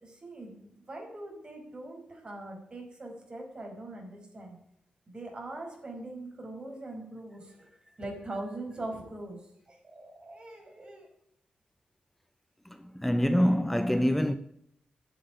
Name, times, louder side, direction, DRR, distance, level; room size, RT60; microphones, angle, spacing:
voice 1, 0.0-4.6 5.1-7.7 8.0-11.1, right 2 dB, 35° right, 5.1 m, -42 dB
voice 2, 12.8-14.3, equal, 5° left, 0.7 m, -25 dB
10.0 x 8.3 x 9.0 m
cardioid pair, 90°, 3 cm